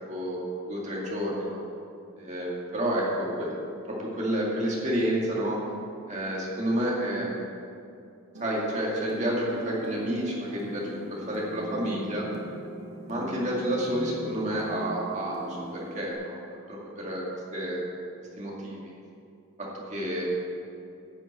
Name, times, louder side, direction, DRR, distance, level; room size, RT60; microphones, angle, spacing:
voice 1, 0.1-0.4 0.7-1.6 2.2-5.6 6.1-7.4 8.4-12.2 13.1-17.2 17.5-17.8 18.4-18.9 19.6-20.3, equal, 35° right, -4 dB, 2.1 m, -30 dB
sound 1, 8.3-16.1, right 1 dB, 75° right, 1.7 m, -41 dB
10.5 x 6.1 x 7.8 m, 2.5 s
head